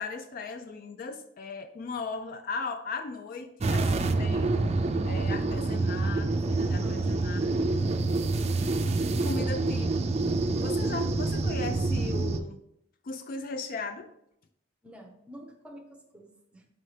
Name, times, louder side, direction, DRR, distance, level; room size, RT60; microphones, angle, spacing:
voice 1, 0.0-4.6 5.1-7.5 9.2-10.0 10.6-12.6 13.0-14.1, left 4 dB, 50° left, 9 dB, 0.4 m, -37 dB
sound 1, 3.6-12.4, right 3 dB, 35° right, 0.4 m, -27 dB
voice 2, 6.8-7.6 14.8-16.7, equal, 5° right, 1 dB, 0.8 m, -50 dB
5.5 x 5.4 x 3.2 m, 0.77 s
head